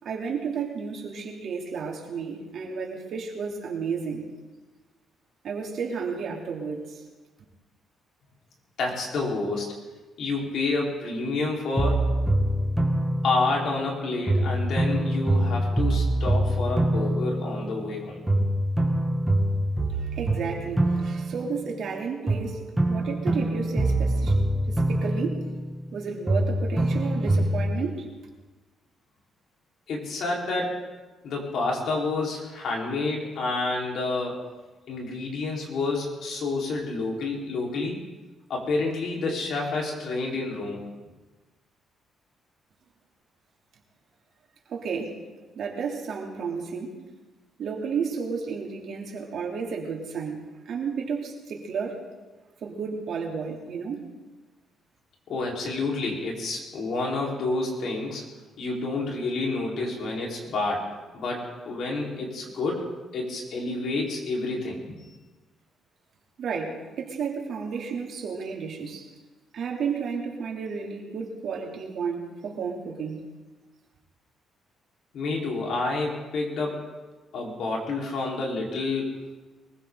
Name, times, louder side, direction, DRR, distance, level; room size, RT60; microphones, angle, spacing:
voice 1, 0.0-4.3 5.4-7.0 20.0-22.6 22.9-24.4 24.7-25.4 25.9-28.1 44.7-45.2 45.5-46.9 47.6-52.0 52.6-54.1 66.4-69.1 69.5-73.2, right 5 dB, 65° right, 0 dB, 3.2 m, -32 dB
voice 2, 8.8-9.7 10.2-12.1 13.2-18.4 29.9-30.7 31.2-34.4 34.9-38.0 38.5-40.8 55.3-58.2 58.6-65.0 75.1-76.9 77.3-79.2, left 3 dB, 70° left, -2 dB, 4.4 m, -29 dB
sound 1, 11.8-13.9 14.3-18.0 18.3-21.9 22.3-26.0 26.3-27.9, right 1 dB, 10° right, 2.3 m, -25 dB
23.0 x 15.5 x 4.0 m, 1.2 s
cardioid pair, 90°, 0 cm